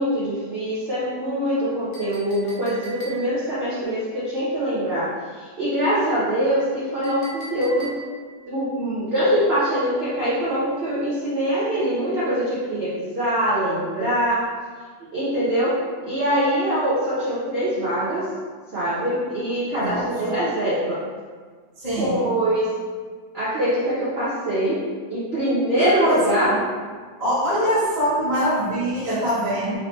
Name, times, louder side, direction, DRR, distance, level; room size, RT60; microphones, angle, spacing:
voice 1, 0.0-7.9 8.5-14.4 15.1-15.7 16.0-18.2 18.7-21.0 22.0-22.7 23.3-24.8 25.1-26.5, equal, 55° right, -9 dB, 0.7 m, -23 dB
Chink clink, 1.9-3.5 7.0-8.3, right 2 dB, 70° left, 1.5 m, -40 dB
voice 2, 19.7-20.3 21.8-22.2 25.8-26.6 27.2-29.8, right 1 dB, 20° right, -11 dB, 1.3 m, -23 dB
4.0 x 2.8 x 3.2 m, 1.5 s
omnidirectional pair, 2.1 m